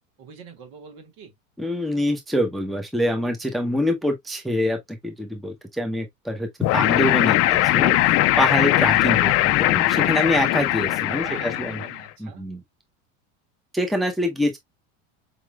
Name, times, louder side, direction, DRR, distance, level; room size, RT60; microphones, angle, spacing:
voice 1, 0.2-1.3 11.1-12.5, right 7 dB, 60° right, 2.0 m, -44 dB
voice 2, 1.6-4.8 5.0-9.3 9.6-11.8 12.2-12.6 13.7-14.6, equal, ahead, 0.7 m, -25 dB
sound 1, 6.6-12.0, left 15 dB, 40° left, 0.4 m, -20 dB
5.0 x 3.0 x 2.2 m
supercardioid pair, 105°, 40 cm